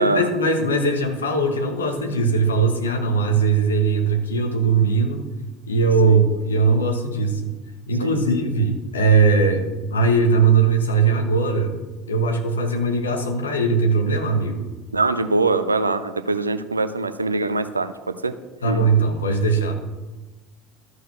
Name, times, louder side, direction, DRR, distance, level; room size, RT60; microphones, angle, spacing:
voice 1, 0.0-5.2 5.7-7.6 7.9-9.6 9.9-11.8 12.1-14.7 18.6-19.7, right 4 dB, 75° left, 5 dB, 1.2 m, -20 dB
voice 2, 14.9-18.4 18.6-18.8, right 3 dB, 85° right, 11 dB, 0.5 m, -23 dB
13.0 x 4.8 x 5.9 m, 1.2 s
figure-of-eight pair, 70°, 0 cm